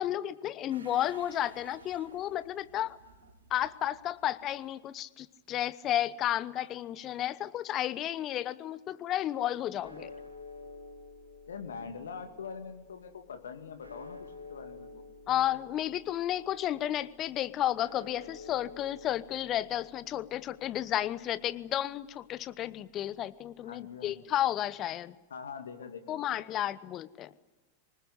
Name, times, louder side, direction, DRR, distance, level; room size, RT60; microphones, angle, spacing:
voice 1, 0.0-3.0 3.5-10.1 15.3-25.1 26.1-27.3, left 12 dB, 30° left, 17 dB, 1.0 m, -32 dB
sound 1, 0.7-5.0 5.3-5.4, right 3 dB, 75° right, 4.9 m, -55 dB
sound 2, 9.8-24.1, left 3 dB, 90° right, 3.9 m, -51 dB
voice 2, 11.5-15.0 23.6-24.2 25.3-26.3, left 6 dB, 65° left, 7 dB, 2.4 m, -43 dB
24.5 x 20.0 x 9.9 m, 1.2 s
figure-of-eight pair, 90°, 0 cm